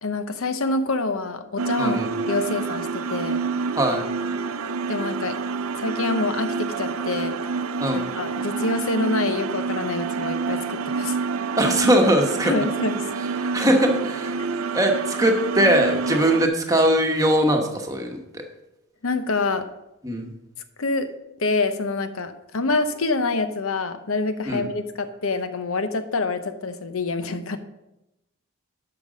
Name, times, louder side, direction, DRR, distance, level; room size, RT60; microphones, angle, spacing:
voice 1, 0.0-2.0 2.3-3.4 4.9-5.4 5.8-7.4 7.9-11.2 12.4-13.0 19.0-19.7 20.8-21.1 21.4-27.6, left 3 dB, 80° left, 9 dB, 0.8 m, -26 dB
sound 1, 1.6-16.5, right 5 dB, 85° right, 0.5 m, -28 dB
voice 2, 7.8-8.1 11.6-12.5 13.4-14.4 14.7-18.4 20.0-20.3 24.5-24.7, right 1 dB, 15° right, 3 dB, 1.1 m, -21 dB
11.0 x 5.9 x 5.1 m, 0.93 s
head